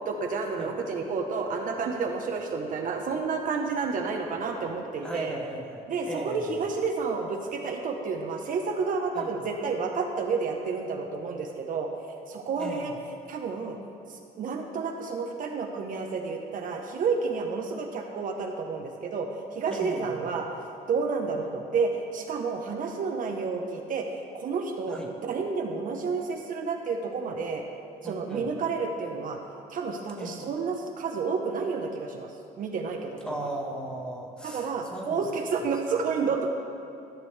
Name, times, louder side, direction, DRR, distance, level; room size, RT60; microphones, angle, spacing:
voice 1, 0.1-5.4 5.9-11.9 12.3-12.9 13.3-13.8 14.1-20.5 20.9-27.6 28.0-29.4 29.7-32.3 32.6-33.4 34.4-36.5, right 4 dB, 55° right, 2 dB, 0.8 m, -30 dB
voice 2, 5.0-6.6 9.1-9.3 12.6-13.0 19.7-20.3 21.4-21.5 24.9-25.1 28.0-28.5 30.2-30.5 33.2-35.3, right 1 dB, 5° left, -1 dB, 1.3 m, -37 dB
13.5 x 6.1 x 3.3 m, 2.8 s
cardioid pair, 110°, 17 cm